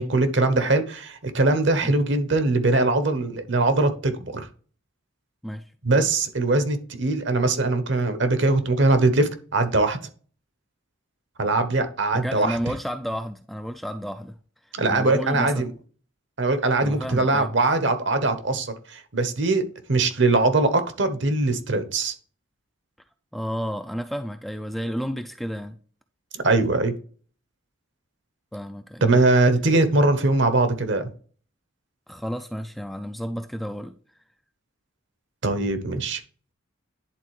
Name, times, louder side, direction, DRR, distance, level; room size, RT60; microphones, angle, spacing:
voice 1, 0.0-4.5 5.8-10.0 11.4-12.6 14.7-15.7 16.4-19.6 19.9-22.1 26.3-26.9 29.0-31.1 35.4-36.2, right 2 dB, 60° right, 1.0 m, -21 dB
voice 2, 12.1-14.4 14.9-15.6 16.8-17.5 23.3-25.8 28.5-29.0 32.1-34.0, equal, ahead, 0.3 m, -31 dB
10.5 x 3.9 x 3.2 m
head